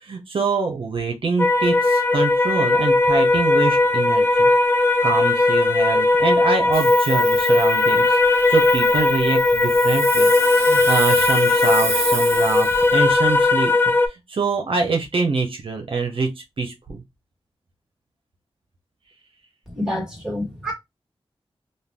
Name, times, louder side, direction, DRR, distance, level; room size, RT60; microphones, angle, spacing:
voice 1, 0.0-4.5 5.0-8.2 8.5-10.3 10.6-13.7 14.1-17.0, right 4 dB, 65° right, 0.6 m, -25 dB
sound 1, 1.4-14.1, left 2 dB, 20° left, 0.5 m, -18 dB
Hiss, 6.7-13.0, right 2 dB, 25° right, 0.7 m, -29 dB
voice 2, 19.7-20.7, left 1 dB, 5° right, 1.4 m, -27 dB
2.5 x 2.2 x 3.3 m
wide cardioid pair, 85°, 10 cm